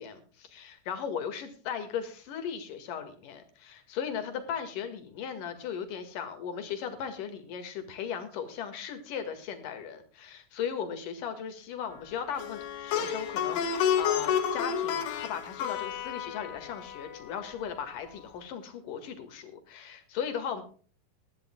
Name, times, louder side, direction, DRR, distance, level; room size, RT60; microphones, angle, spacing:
voice 1, 0.0-20.6, left 7 dB, 55° left, 8 dB, 3.1 m, -37 dB
Plucked string instrument, 12.4-17.6, left 8 dB, 80° left, 3.7 m, -31 dB
20.0 x 13.5 x 2.3 m, 0.40 s
omnidirectional pair, 5.0 m